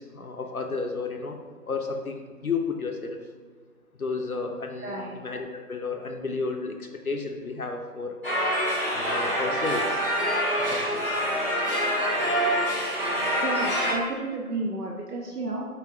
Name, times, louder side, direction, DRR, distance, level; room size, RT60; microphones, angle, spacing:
voice 1, 0.0-1.4 1.6-3.2 4.0-8.2 8.9-10.0 10.6-11.2, left 4 dB, 65° left, 4 dB, 0.5 m, -32 dB
voice 2, 4.8-5.2 13.4-15.7, right 2 dB, 75° right, -1 dB, 0.7 m, -32 dB
sound 1, 8.2-13.9, equal, 35° right, 1.0 m, -26 dB
4.9 x 4.3 x 2.5 m, 1.5 s
figure-of-eight pair, 170°, 47 cm